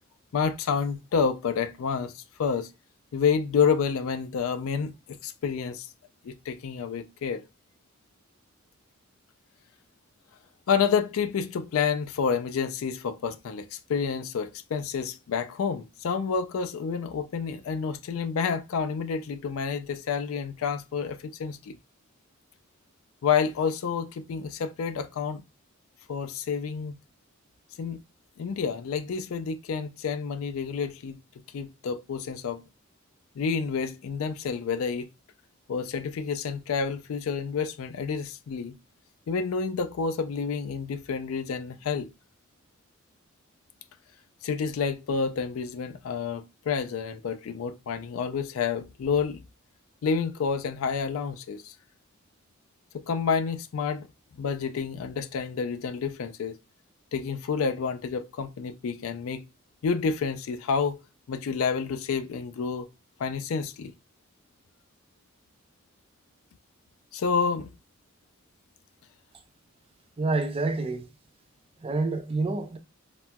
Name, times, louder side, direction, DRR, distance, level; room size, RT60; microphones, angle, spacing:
voice 1, 0.3-2.7 3.1-5.9 6.2-7.4 10.7-21.8 23.2-25.4 26.1-27.0 27.8-28.0 28.4-31.2 31.5-32.6 33.4-35.1 35.7-38.8 39.3-42.1 44.4-49.4 50.0-51.7 52.9-54.1 54.4-56.6 57.1-59.4 59.8-61.0 61.3-62.9 63.2-63.9 67.1-67.7, left 6 dB, 75° left, 0.4 m, -29 dB
voice 2, 70.2-71.1 71.8-72.8, right 3 dB, 25° right, 0.4 m, -28 dB
4.1 x 2.2 x 2.2 m
head